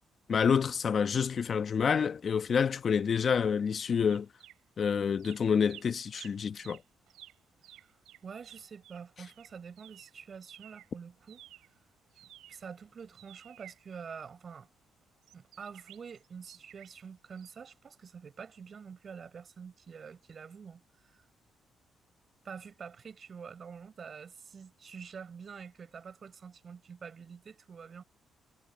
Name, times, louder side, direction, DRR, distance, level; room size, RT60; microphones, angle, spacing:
voice 1, 0.3-4.3 4.8-6.8, left 6 dB, 50° left, 1.0 m, -28 dB
sound 1, 4.1-4.9 5.2-10.9 11.2-14.5 15.2-17.1 17.4-17.5, right 13 dB, 85° right, 3.1 m, -54 dB
voice 2, 8.2-11.4 12.2-14.7 15.3-21.3 22.4-28.0, right 6 dB, 45° right, 7.0 m, -47 dB
cardioid pair, 90°, 0 cm